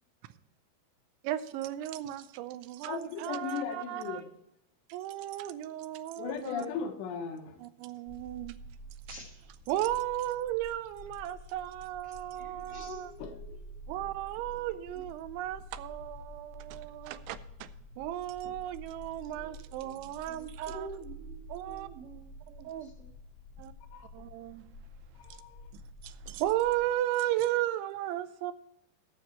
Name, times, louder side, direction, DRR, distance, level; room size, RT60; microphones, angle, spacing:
voice 1, 1.2-4.2 4.9-6.7 7.6-8.6 9.7-13.1 13.9-17.7 18.0-20.9 21.5-21.9 22.6-22.9 23.6-23.7 24.1-24.7 25.7-28.5, right 13 dB, 85° right, 3.0 m, -35 dB
voice 2, 2.9-4.3 6.2-7.6 13.2-13.3 23.9-24.1 25.2-25.6, left 6 dB, 75° left, 3.2 m, -37 dB
sound 1, 8.1-26.9, equal, 25° left, 1.6 m, -49 dB
voice 3, 12.1-13.6 14.7-15.0 19.3-23.1, right 2 dB, 65° right, 1.5 m, -49 dB
14.5 x 7.2 x 4.4 m
omnidirectional pair, 5.2 m